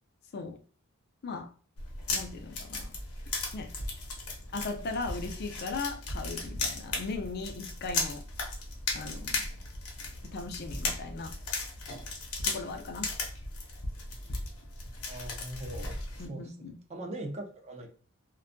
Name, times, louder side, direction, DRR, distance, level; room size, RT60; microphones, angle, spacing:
sound 1, 1.8-16.3, left 3 dB, 80° left, 0.7 m, -36 dB
voice 1, 2.1-2.9 3.5-3.7 4.5-8.2 8.9-9.5 10.3-11.3 12.5-13.1 16.2-16.8, left 3 dB, 50° left, 0.4 m, -38 dB
voice 2, 15.1-16.0 16.3-16.4 16.9-17.9, right 1 dB, 30° right, 0.5 m, -40 dB
2.6 x 2.2 x 2.5 m
head